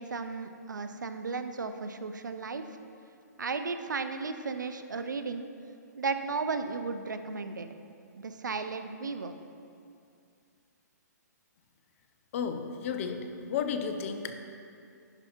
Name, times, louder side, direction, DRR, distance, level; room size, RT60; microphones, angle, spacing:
voice 1, 0.0-2.7 3.4-5.5 6.0-7.7 8.2-9.3, right 4 dB, 85° right, 9 dB, 0.6 m, -34 dB
voice 2, 12.3-14.4, left 6 dB, 45° left, 7 dB, 0.8 m, -33 dB
11.0 x 5.6 x 4.5 m, 2.5 s
hypercardioid pair, 135°, 10 cm